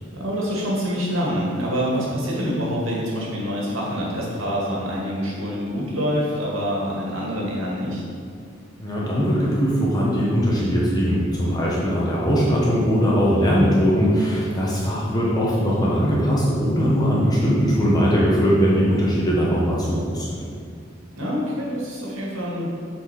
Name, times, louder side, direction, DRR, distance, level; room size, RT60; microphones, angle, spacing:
voice 1, 0.1-8.0 21.2-22.7, equal, 90° right, -4 dB, 2.1 m, -26 dB
voice 2, 8.8-20.4, equal, 20° left, -5 dB, 1.1 m, -20 dB
7.9 x 4.5 x 5.9 m, 2.3 s
head